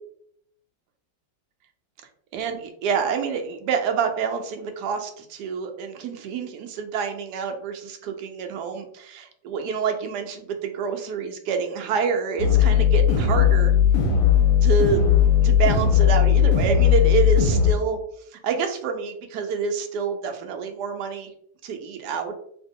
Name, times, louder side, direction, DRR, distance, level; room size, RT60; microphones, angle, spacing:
voice 1, 2.3-13.7 14.6-15.0 15.4-18.0 18.3-21.3 21.6-22.3, right 5 dB, 70° right, 5 dB, 1.1 m, -27 dB
sound 1, 12.4-17.7, left 8 dB, 60° left, 1.0 m, -18 dB
2.9 x 2.7 x 3.6 m, 0.68 s
omnidirectional pair, 2.0 m